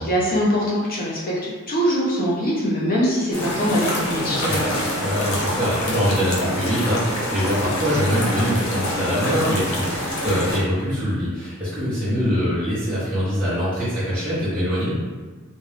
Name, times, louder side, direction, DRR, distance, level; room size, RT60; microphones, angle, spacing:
voice 1, 0.0-4.9, equal, 40° left, -5 dB, 0.9 m, -23 dB
sound 1, 3.3-10.6, left 1 dB, 75° left, 0.8 m, -26 dB
voice 2, 5.0-14.9, equal, 10° right, -15 dB, 1.0 m, -23 dB
3.6 x 2.5 x 3.3 m, 1.3 s
head